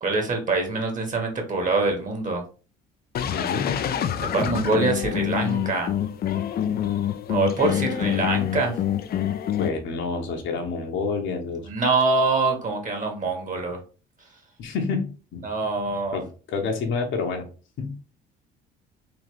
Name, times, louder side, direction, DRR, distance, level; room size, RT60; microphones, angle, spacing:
voice 1, 0.0-2.4 4.3-5.9 7.3-8.7 11.7-13.8 15.4-16.2, right 3 dB, 40° right, 3 dB, 1.8 m, -24 dB
sound 1, 3.1-9.7, left 10 dB, 45° left, 0.5 m, -26 dB
voice 2, 3.3-3.7 9.6-11.7 14.6-15.1 15.3-15.4 16.1-17.4 17.8-17.9, left 4 dB, 65° left, 3 dB, 1.1 m, -28 dB
3.9 x 2.8 x 3.3 m, 0.36 s
hypercardioid pair, 65°, 21 cm